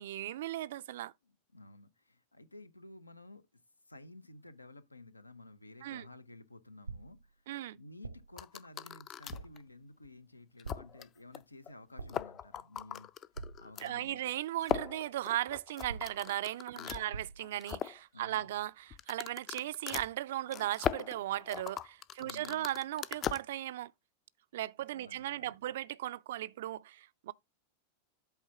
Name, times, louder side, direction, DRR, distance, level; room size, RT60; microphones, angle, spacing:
voice 1, 0.0-1.1 5.8-6.1 7.5-7.8 13.8-23.9 24.5-27.3, right 13 dB, 55° right, 0.3 m, -37 dB
voice 2, 1.2-3.6 3.9-7.4 7.8-13.1 13.6-14.2 16.7-17.2 18.1-18.5 22.2-22.7 24.9-25.6, left 2 dB, 80° left, 0.6 m, -53 dB
sound 1, 6.9-7.3 8.0-8.4 9.3-9.7 10.6-11.1 12.0-12.4 13.3-13.9 14.7-15.1 15.9-16.4 17.1-17.5, right 4 dB, 80° right, 0.7 m, -46 dB
sound 2, 8.4-9.6 10.0-10.1 10.6-11.1 11.3-11.4 11.7-11.8 12.0-13.9 14.6-17.0 17.4-18.0 18.9-23.4, left 9 dB, 30° left, 0.4 m, -39 dB
8.2 x 3.4 x 5.6 m
figure-of-eight pair, 90°, 0 cm